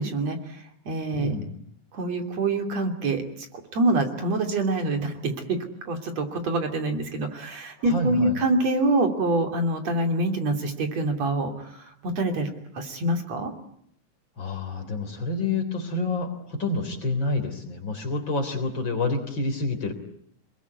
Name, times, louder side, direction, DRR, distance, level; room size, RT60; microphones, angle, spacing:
voice 1, 0.0-1.4 1.9-3.2 3.7-5.6 5.9-12.5 12.7-13.5, right 2 dB, 60° right, 5 dB, 4.1 m, -26 dB
voice 2, 1.2-1.5 7.8-8.4 14.4-19.9, left 2 dB, 40° left, 7 dB, 4.0 m, -28 dB
28.5 x 21.0 x 9.5 m, 0.69 s
omnidirectional pair, 3.5 m